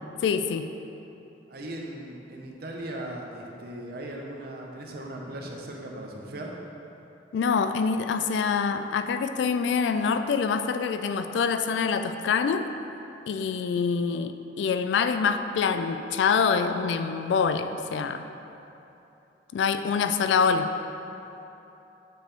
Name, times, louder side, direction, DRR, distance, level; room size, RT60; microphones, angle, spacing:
voice 1, 0.2-0.7 7.3-12.6 13.3-18.3 19.5-20.7, left 5 dB, 75° left, 9 dB, 0.3 m, -25 dB
voice 2, 1.5-6.5, right 1 dB, 55° right, 0 dB, 0.7 m, -38 dB
8.0 x 3.4 x 4.4 m, 3.0 s
head